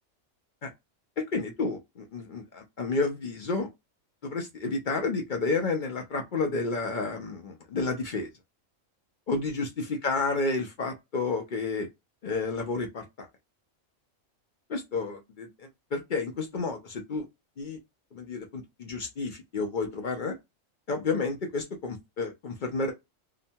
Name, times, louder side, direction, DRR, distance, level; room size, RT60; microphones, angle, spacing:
voice 1, 1.3-3.7 4.2-8.3 9.3-11.9 12.2-13.0 14.7-17.2 17.6-17.8 18.1-20.4 20.9-22.9, left 3 dB, 55° left, 0.5 m, -31 dB
2.9 x 2.1 x 2.7 m
omnidirectional pair, 1.4 m